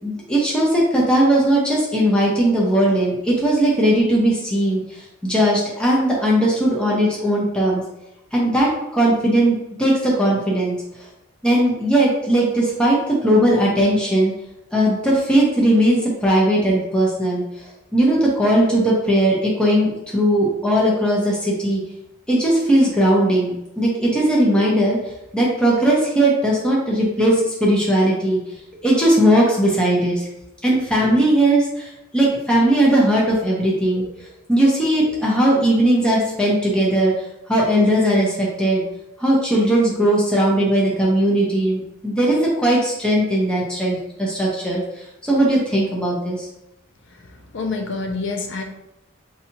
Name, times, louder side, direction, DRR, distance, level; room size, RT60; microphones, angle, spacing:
voice 1, 0.0-7.8 8.3-10.8 11.4-14.3 14.7-17.4 17.9-21.8 22.3-25.0 25.3-28.4 28.8-30.3 30.6-34.1 34.5-37.1 37.5-38.8 39.2-44.8 45.2-46.5, right 1 dB, 5° left, -5 dB, 0.8 m, -18 dB
voice 2, 47.2-48.6, left 3 dB, 65° left, 4 dB, 0.6 m, -27 dB
4.8 x 2.8 x 2.8 m, 0.88 s
head